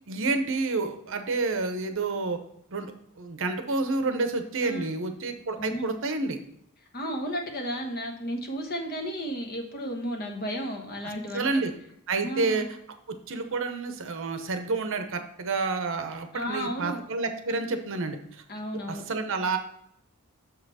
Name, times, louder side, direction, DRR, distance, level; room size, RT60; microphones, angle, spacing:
voice 1, 0.1-2.4 2.7-2.9 3.2-6.4 11.0-11.7 12.1-12.6 13.3-18.2 18.9-19.6, right 3 dB, 60° right, 7 dB, 0.8 m, -29 dB
voice 2, 5.5-5.9 6.9-11.5 12.2-12.6 16.3-17.0 18.5-19.0, equal, 45° left, 3 dB, 1.2 m, -33 dB
6.9 x 5.7 x 4.1 m, 0.71 s
head